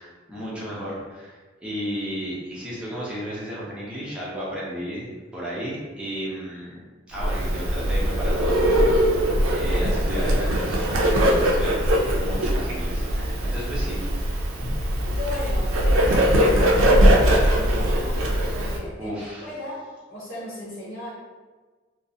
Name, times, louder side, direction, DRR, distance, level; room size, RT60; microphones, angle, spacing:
voice 1, 0.0-6.8 7.1-11.8 12.2-14.1 19.0-19.5, equal, 5° right, -7 dB, 0.5 m, -33 dB
Bird, 7.2-18.8, equal, 90° right, 0.4 m, -21 dB
voice 2, 15.2-18.1 18.5-19.8 20.1-21.1, left 1 dB, 75° left, -9 dB, 0.9 m, -35 dB
2.4 x 2.0 x 2.6 m, 1.3 s
head